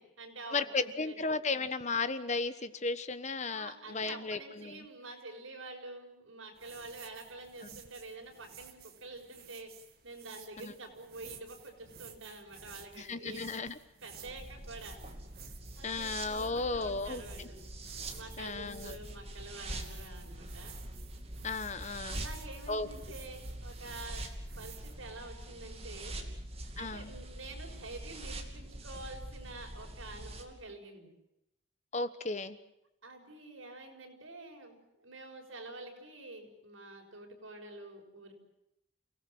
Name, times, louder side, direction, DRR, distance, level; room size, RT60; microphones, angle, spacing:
voice 1, 0.0-1.2 3.5-9.7 10.0-13.7 14.0-15.0 15.8-17.6 18.1-20.8 22.1-26.3 26.7-31.1 33.0-38.3, right 2 dB, 90° right, 2 dB, 6.2 m, -48 dB
voice 2, 0.5-4.8 10.6-10.7 13.0-13.8 15.8-17.2 18.4-19.0 21.4-22.2 22.7-22.9 26.8-27.1 31.9-32.6, left 3 dB, 35° left, 12 dB, 1.2 m, -35 dB
sound 1, 6.6-24.9, right 7 dB, 50° right, 2.1 m, -54 dB
sound 2, 14.2-30.4, right 1 dB, 30° right, 2.8 m, -44 dB
29.0 x 18.0 x 7.8 m, 0.85 s
head